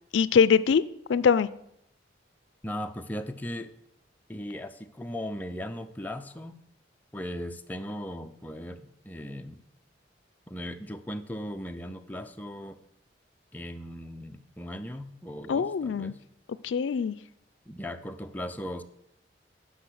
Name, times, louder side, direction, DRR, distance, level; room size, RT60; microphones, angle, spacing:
voice 1, 0.1-0.8 1.1-1.5 15.5-16.1 16.6-17.1, left 6 dB, 80° left, 17 dB, 0.4 m, -22 dB
voice 2, 2.6-3.7 4.3-6.6 7.1-9.6 10.5-12.8 13.5-16.2 17.7-18.8, equal, 10° left, 6 dB, 0.5 m, -38 dB
10.0 x 5.9 x 6.3 m, 0.77 s
head